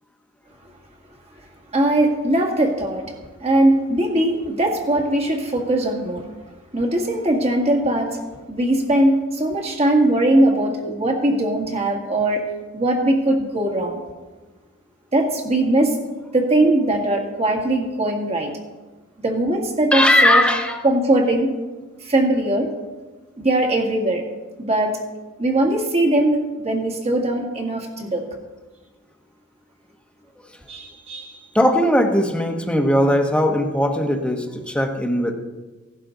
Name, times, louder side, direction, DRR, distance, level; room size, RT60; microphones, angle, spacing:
voice 1, 1.7-3.1 3.4-6.3 6.7-8.2 8.5-12.4 12.7-14.0 15.1-16.0 16.3-18.5 19.2-20.4 20.8-21.5 22.0-22.7 23.4-24.2 24.6-24.9 25.4-28.2 30.7-31.4, right 1 dB, 30° right, 2 dB, 2.0 m, -20 dB
voice 2, 19.9-20.8 31.5-35.3, left 1 dB, 5° left, 3 dB, 1.2 m, -18 dB
16.0 x 11.5 x 3.9 m, 1.2 s
head